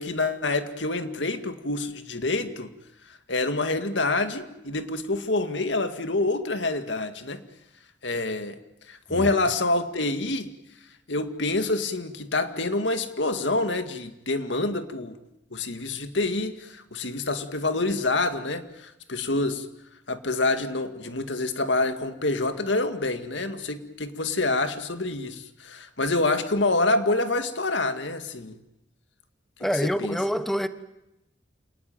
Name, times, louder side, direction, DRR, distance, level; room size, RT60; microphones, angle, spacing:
voice 1, 0.0-2.7 3.3-7.4 8.0-8.6 8.9-10.5 11.1-15.2 15.5-19.7 20.1-28.6 29.8-30.2, left 2 dB, 75° left, 2.1 m, -27 dB
voice 2, 29.6-30.7, equal, ahead, 1.2 m, -26 dB
28.5 x 19.5 x 9.3 m
head